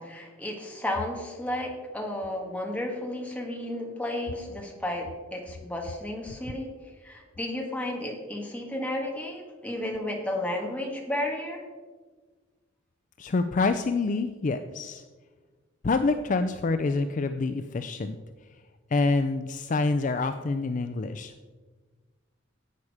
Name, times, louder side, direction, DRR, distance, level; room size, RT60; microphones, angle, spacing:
voice 1, 0.0-6.7 7.0-11.6, left 1 dB, 5° left, 0 dB, 1.8 m, -33 dB
voice 2, 13.2-15.0 15.8-18.2 18.5-18.6 18.9-21.3, left 3 dB, 40° left, 9 dB, 0.4 m, -27 dB
11.0 x 8.6 x 4.9 m, 1.4 s
head